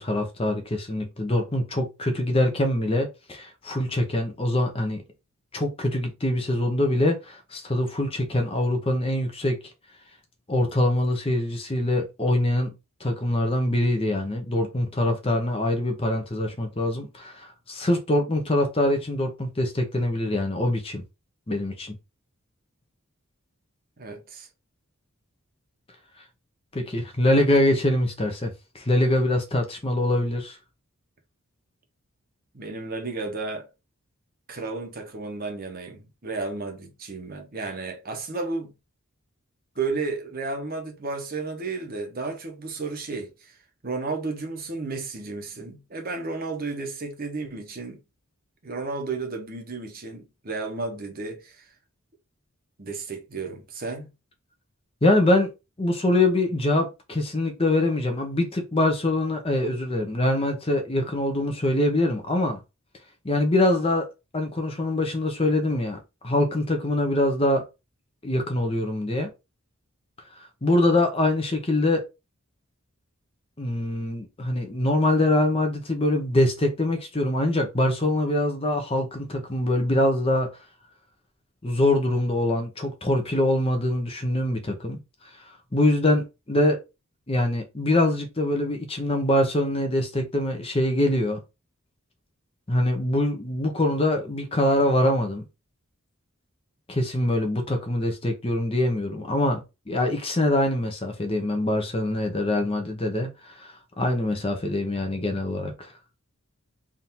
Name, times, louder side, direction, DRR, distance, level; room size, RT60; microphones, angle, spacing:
voice 1, 0.0-5.0 5.5-9.6 10.5-12.7 13.0-21.0 21.5-22.0 26.7-30.6 55.0-55.5 55.8-62.6 63.2-64.1 64.3-66.0 66.2-67.6 68.2-69.3 70.4-72.0 73.6-80.5 81.6-85.0 85.7-86.8 87.3-91.4 92.7-95.4 96.9-105.9, left 1 dB, 25° left, 0.8 m, -24 dB
voice 2, 24.0-24.5 32.5-33.7 34.5-38.7 39.8-43.6 43.8-48.0 48.6-51.7 52.8-54.1, right 3 dB, 45° right, 1.0 m, -33 dB
3.7 x 2.7 x 4.2 m
head